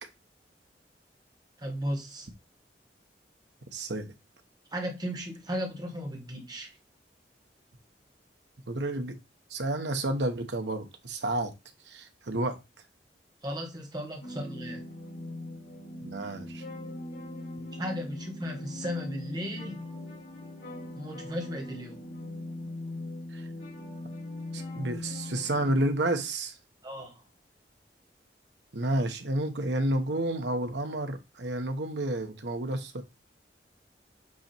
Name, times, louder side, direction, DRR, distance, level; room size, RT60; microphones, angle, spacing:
voice 1, 1.6-2.3 4.7-6.7 13.4-14.9 17.8-19.9 20.9-22.0 26.8-27.2, equal, 25° right, 1.7 m, -36 dB
voice 2, 3.7-4.1 8.7-9.2 9.5-11.5 11.9-12.6 16.0-16.6 23.3-23.5 24.5-26.6 28.7-33.0, right 1 dB, 85° right, 1.2 m, -30 dB
sound 1, 14.2-25.9, left 1 dB, 75° left, 4.7 m, -40 dB
8.3 x 3.1 x 4.5 m
head